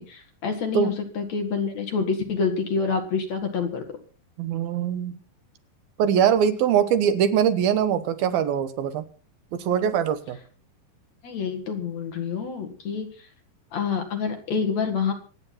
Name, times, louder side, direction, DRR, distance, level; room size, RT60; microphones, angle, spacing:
voice 1, 0.0-3.8 11.2-13.3 13.7-15.1, left 5 dB, 50° left, 5 dB, 2.8 m, -27 dB
voice 2, 4.4-5.1 6.0-9.0 9.5-10.4, right 8 dB, 75° right, 11 dB, 2.9 m, -22 dB
25.5 x 9.7 x 4.2 m, 0.37 s
omnidirectional pair, 4.4 m